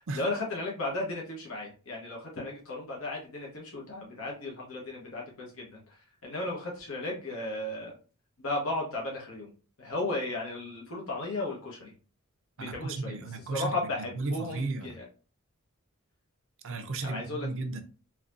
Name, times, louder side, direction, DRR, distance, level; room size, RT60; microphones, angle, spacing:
voice 1, 0.1-5.8 6.2-7.9 8.4-9.5 9.8-11.9 12.6-13.1 13.5-14.9 17.0-17.5, left 2 dB, 65° left, 1.2 m, -35 dB
voice 2, 12.6-15.0 16.6-17.8, right 3 dB, 60° right, 0.6 m, -35 dB
4.1 x 2.9 x 2.5 m
head